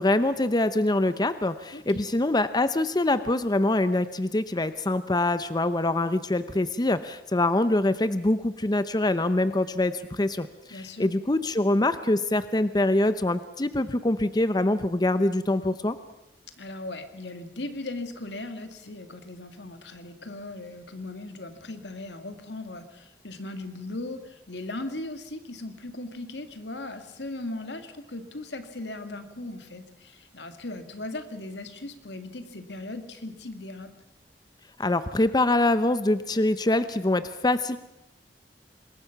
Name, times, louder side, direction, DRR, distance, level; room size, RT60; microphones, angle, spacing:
voice 1, 0.0-16.0 34.8-37.8, left 2 dB, 25° left, 12 dB, 0.7 m, -24 dB
voice 2, 1.7-2.1 10.7-11.1 16.6-33.9, left 2 dB, 80° left, 8 dB, 2.1 m, -38 dB
26.0 x 21.0 x 5.9 m, 0.89 s
head